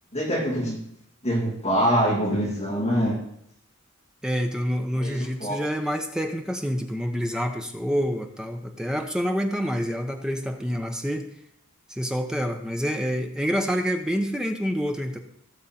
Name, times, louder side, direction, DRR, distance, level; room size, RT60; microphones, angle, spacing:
voice 1, 0.1-0.8 1.2-3.2 5.0-5.6, equal, 30° left, -3 dB, 2.1 m, -24 dB
voice 2, 4.2-11.3 11.9-15.2, equal, 5° right, 4 dB, 0.8 m, -27 dB
16.0 x 6.6 x 4.3 m, 0.71 s
head